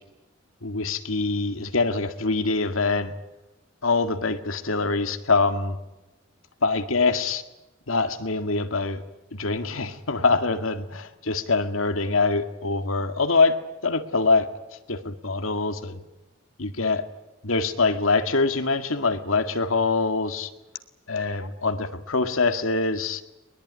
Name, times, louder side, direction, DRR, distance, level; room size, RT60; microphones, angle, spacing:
voice 1, 0.6-3.1 3.8-5.8 6.6-7.4 7.9-9.0 9.3-13.6 13.8-14.5 14.9-16.0 16.6-17.1 17.4-20.5 21.1-23.2, left 3 dB, 80° left, 8 dB, 2.0 m, -24 dB
21.5 x 21.5 x 9.6 m, 0.97 s
head